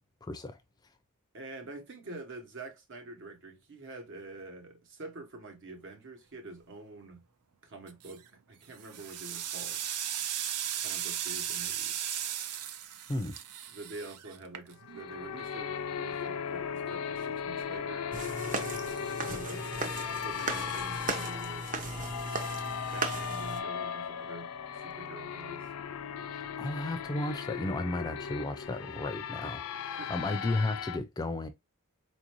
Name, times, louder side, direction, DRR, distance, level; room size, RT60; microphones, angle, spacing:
voice 1, 0.2-0.6 13.1-13.3 26.3-31.5, left 2 dB, 20° left, 0.4 m, -34 dB
voice 2, 1.3-7.2 7.6-9.8 10.8-12.1 13.7-18.1 19.2-22.3 22.9-25.7 30.0-30.4, right 2 dB, 55° right, 1.1 m, -46 dB
sound 1, 7.9-8.3 8.7-15.0, right 10 dB, 85° right, 0.5 m, -36 dB
sound 2, 14.8-31.0, left 7 dB, 80° left, 0.4 m, -37 dB
sound 3, 18.1-23.6, right 3 dB, 35° right, 0.7 m, -37 dB
4.3 x 2.6 x 2.9 m
head